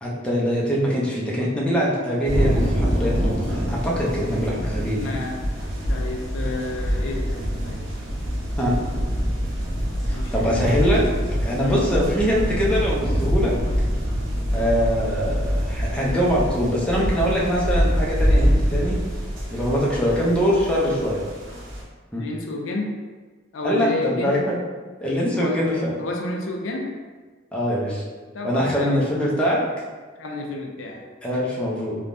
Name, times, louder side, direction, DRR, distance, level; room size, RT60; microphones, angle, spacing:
voice 1, 0.0-5.2 8.6-8.7 10.1-11.0 11.4-13.6 14.5-19.0 19.5-21.2 22.1-22.2 23.6-24.4 25.0-26.0 27.5-28.0 28.4-29.6 31.2-32.0, equal, 5° left, -6 dB, 0.5 m, -23 dB
sound 1, 2.2-21.8, equal, 90° right, 0.6 m, -25 dB
voice 2, 4.9-5.5 5.9-7.8 10.1-10.7 11.6-11.9 22.2-23.0 23.5-24.4 25.3-25.7 26.0-27.0 28.3-29.0 30.2-31.0, left 2 dB, 85° left, 1 dB, 0.4 m, -30 dB
3.3 x 2.2 x 2.5 m, 1.4 s
head